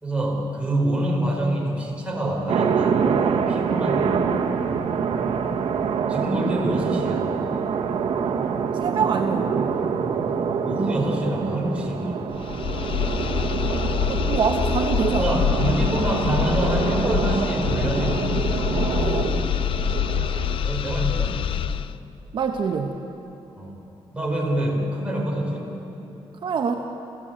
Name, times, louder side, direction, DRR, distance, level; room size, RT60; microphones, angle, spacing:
voice 1, 0.0-4.3 6.1-7.3 10.6-12.4 15.2-18.4 20.6-21.4 23.6-23.8 24.1-25.7, right 1 dB, 10° right, -2 dB, 4.6 m, -26 dB
sound 1, 2.5-20.6, right 6 dB, 70° right, 1.6 m, -26 dB
voice 2, 8.7-9.8 14.1-15.3 18.9-19.6 22.3-22.9 26.4-26.7, right 6 dB, 55° right, 3 dB, 1.2 m, -25 dB
sound 2, 12.3-22.0, left 9 dB, 65° left, 0.6 m, -25 dB
28.0 x 16.0 x 9.0 m, 2.9 s
wide cardioid pair, 155°, 10 cm